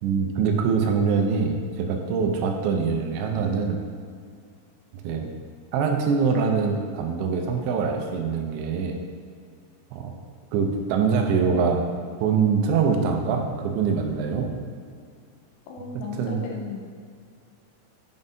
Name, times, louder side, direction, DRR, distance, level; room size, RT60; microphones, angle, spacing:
voice 1, 0.0-3.8 5.0-5.3 5.7-9.0 9.9-10.1 10.5-11.8 12.2-14.5 16.2-16.4, right 5 dB, 85° right, 3 dB, 2.9 m, -24 dB
voice 2, 15.7-16.8, left 4 dB, 85° left, 0 dB, 2.9 m, -35 dB
9.1 x 5.4 x 2.7 m, 2.2 s
omnidirectional pair, 5.1 m